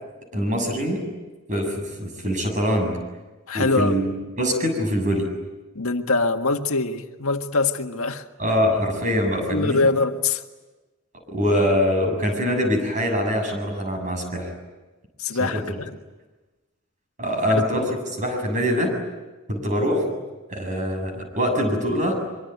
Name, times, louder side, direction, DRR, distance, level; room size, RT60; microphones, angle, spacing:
voice 1, 0.3-1.0 1.5-3.0 3.5-5.3 8.4-9.9 11.3-14.5 15.4-15.6 17.2-17.8 18.1-18.9 19.5-20.1 20.5-22.2, equal, 35° right, 7.2 m, -23 dB
voice 2, 3.5-4.0 5.8-8.3 9.5-10.4 15.2-15.9 17.5-17.9, left 3 dB, 90° left, 1.8 m, -23 dB
25.0 x 24.0 x 9.4 m
head